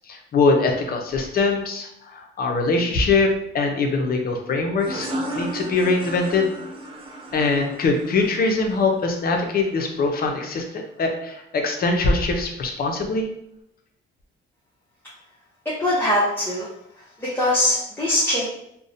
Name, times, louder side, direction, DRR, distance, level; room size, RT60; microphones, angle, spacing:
voice 1, 0.1-5.1 5.3-6.5 7.3-13.3, left 3 dB, 50° left, 3 dB, 0.5 m, -22 dB
sound 1, 4.8-10.2, right 1 dB, 25° right, 0.5 m, -34 dB
voice 2, 15.6-16.7 17.2-18.5, left 1 dB, 10° left, -7 dB, 0.7 m, -22 dB
2.6 x 2.1 x 2.6 m, 0.76 s
cardioid pair, 90°, 20 cm